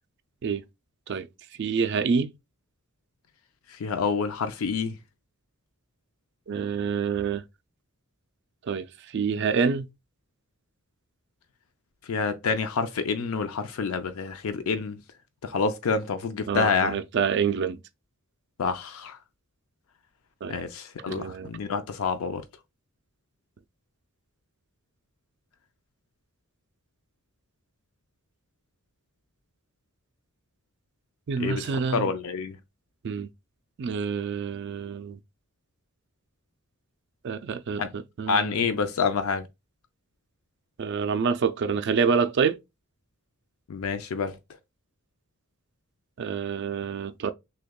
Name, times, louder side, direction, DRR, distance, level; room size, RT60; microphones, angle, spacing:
voice 1, 1.6-2.3 6.5-7.4 8.6-9.9 16.5-17.8 20.4-20.5 21.1-21.5 31.3-32.1 33.0-33.3 33.8-35.2 37.2-38.7 40.8-42.6 46.2-47.3, right 6 dB, 55° right, 0.4 m, -27 dB
voice 2, 3.7-5.0 12.1-15.0 15.4-17.0 18.6-19.2 20.5-22.4 31.4-31.6 31.9-32.6 37.8-37.9 38.3-39.5 43.7-44.4, left 5 dB, 75° left, 0.4 m, -27 dB
6.3 x 2.2 x 2.2 m
head